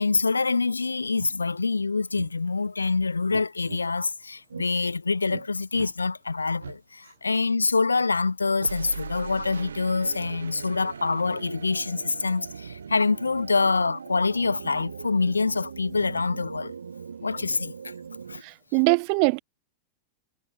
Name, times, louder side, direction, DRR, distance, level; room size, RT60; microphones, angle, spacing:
voice 1, 0.0-16.7 17.2-17.9 18.3-18.4, left 4 dB, 80° left, 0.7 m, -25 dB
sound 1, 0.7-0.8 1.1-1.3 2.1-2.3 3.3-3.8 4.5-4.7 5.3-5.5 5.7-5.9 6.6-6.8 8.6-18.4, right 6 dB, 70° right, 4.6 m, -40 dB
voice 2, 18.4-19.4, right 40 dB or more, 45° right, 1.2 m, -22 dB
figure-of-eight pair, 90°, 0 cm